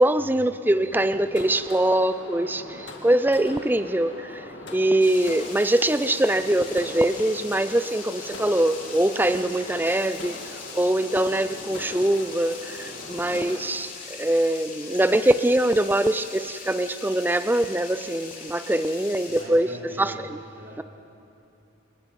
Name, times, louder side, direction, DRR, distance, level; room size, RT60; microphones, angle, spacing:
voice 1, 0.0-10.4 10.7-13.9 14.2-19.7 20.0-20.1, right 1 dB, 10° right, 12 dB, 0.4 m, -23 dB
sound 1, 0.9-13.7, left 2 dB, 60° left, 2.3 m, -41 dB
sound 2, 5.0-19.4, left 5 dB, 40° left, 3.1 m, -41 dB
voice 2, 19.3-20.8, right 1 dB, 60° right, -4 dB, 4.8 m, -42 dB
29.5 x 20.0 x 5.4 m, 2.7 s
head